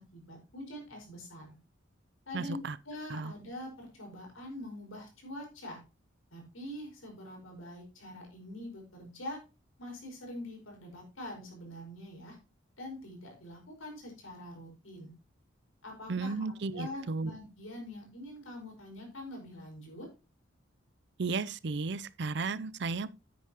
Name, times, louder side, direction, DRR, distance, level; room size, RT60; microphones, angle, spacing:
voice 1, 0.0-1.5 2.2-2.6 2.8-5.8 6.3-9.4 9.8-12.4 12.8-15.1 15.8-20.1, left 1 dB, 85° left, 5.0 m, -44 dB
voice 2, 2.3-2.8 3.1-3.3 16.1-17.3 21.2-23.1, right 4 dB, 55° right, 0.5 m, -34 dB
9.4 x 9.2 x 2.9 m
head